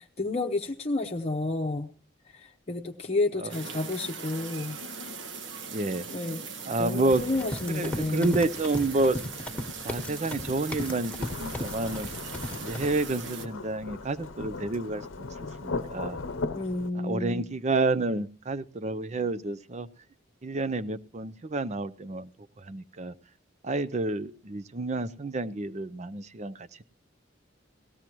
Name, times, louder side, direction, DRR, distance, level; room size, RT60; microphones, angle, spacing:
voice 1, 0.0-1.9 2.3-4.8 6.1-6.5 6.8-8.4 16.5-17.4, left 2 dB, 35° left, 2 dB, 0.9 m, -31 dB
sound 1, 3.5-13.5, right 4 dB, 70° right, 1.4 m, -40 dB
voice 2, 5.7-6.1 6.7-7.2 7.7-9.2 9.8-12.1 12.6-15.3 15.6-16.2 17.0-19.9 20.4-22.3 22.6-23.1 23.6-26.8, right 2 dB, 35° right, 15 dB, 0.6 m, -29 dB
Run, 7.1-12.9, left 1 dB, 5° left, 1.4 m, -37 dB
Thunderstorm / Rain, 11.2-16.9, left 3 dB, 90° left, 0.8 m, -37 dB
18.5 x 15.0 x 3.0 m, 0.34 s
head